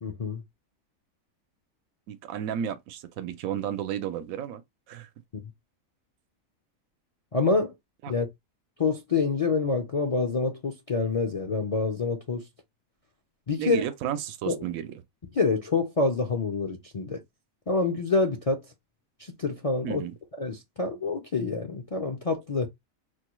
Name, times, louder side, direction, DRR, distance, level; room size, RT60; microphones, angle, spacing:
voice 1, 0.0-0.4 5.3-5.4 7.3-7.7 8.1-8.3 8.8-12.4 13.5-13.8 14.5-14.6 15.3-17.2 17.7-18.6 19.4-20.0 20.4-22.7, left 4 dB, 50° left, 0.4 m, -26 dB
voice 2, 2.1-4.6 4.9-5.1 8.0-8.1 13.6-14.9 19.8-20.1, right 9 dB, 85° right, 1.1 m, -32 dB
4.3 x 2.2 x 2.9 m
omnidirectional pair, 1.4 m